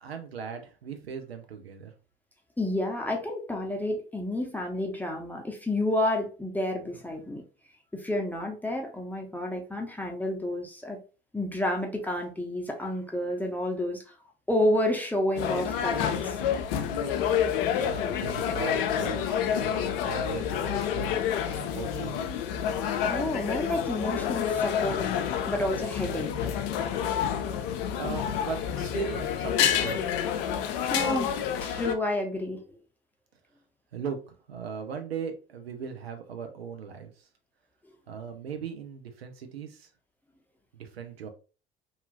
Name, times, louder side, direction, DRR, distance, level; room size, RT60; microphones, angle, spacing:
voice 1, 0.0-1.9 17.8-22.3 28.0-30.0 33.9-37.1 38.1-39.9 40.7-41.3, right 6 dB, 85° right, 0.5 m, -38 dB
voice 2, 2.6-7.4 7.9-11.0 11.3-14.0 14.5-16.4 23.1-25.0 25.5-26.3 28.1-28.2 30.9-32.6, left 1 dB, 5° left, 0.6 m, -30 dB
sound 1, 15.4-32.0, left 8 dB, 65° left, 0.4 m, -28 dB
2.8 x 2.3 x 2.5 m
figure-of-eight pair, 60°, 30 cm